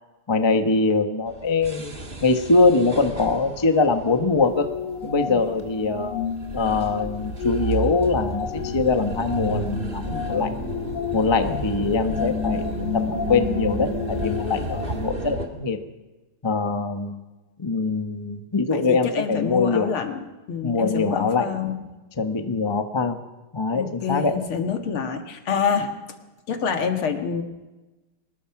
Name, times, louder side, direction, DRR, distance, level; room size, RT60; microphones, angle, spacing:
voice 1, 0.3-1.9 2.2-4.7 5.0-6.2 6.5-10.5 11.1-15.8 16.4-17.2 17.6-19.9 20.6-21.5 22.2-23.2 23.5-24.4, left 3 dB, 20° left, 7 dB, 0.9 m, -23 dB
sound 1, 1.3-15.4, right 2 dB, 25° right, 2.3 m, -33 dB
sound 2, 4.4-15.1, left 7 dB, 90° left, 2.6 m, -31 dB
voice 2, 18.7-21.8 23.7-25.9 26.5-27.4, left 6 dB, 75° left, 5 dB, 2.6 m, -27 dB
23.5 x 20.0 x 6.0 m, 1.1 s
omnidirectional pair, 2.4 m